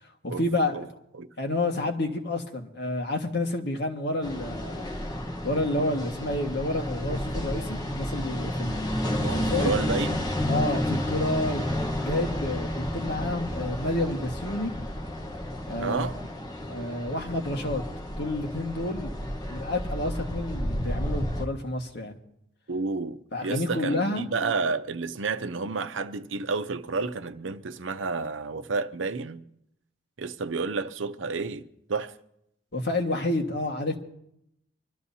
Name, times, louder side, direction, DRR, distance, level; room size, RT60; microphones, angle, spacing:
voice 1, 0.2-0.8 1.4-4.9 5.4-9.7 10.5-11.6 12.0-14.7 15.7-16.1 16.6-17.8 18.2-19.1 19.5-22.2 23.3-24.3 32.7-34.0, left 1 dB, 60° left, 1.7 m, -29 dB
sound 1, 4.2-21.5, left 1 dB, 20° left, 1.1 m, -31 dB
voice 2, 9.2-10.2 15.8-16.2 22.7-29.4 30.2-32.1, right 4 dB, 85° right, 0.7 m, -30 dB
24.5 x 13.0 x 2.8 m
head